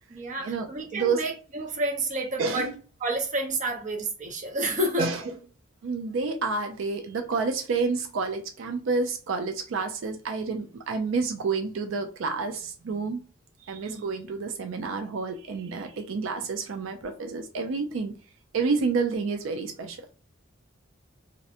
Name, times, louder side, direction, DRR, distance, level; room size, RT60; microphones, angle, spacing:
voice 1, 0.1-2.7 3.0-5.1 13.9-14.0, right 1 dB, 40° right, 0.6 m, -30 dB
voice 2, 2.4-2.7 5.0-5.2 5.8-13.2 13.6-18.1 18.5-20.0, right 4 dB, 85° right, 0.4 m, -29 dB
2.5 x 2.0 x 2.7 m
head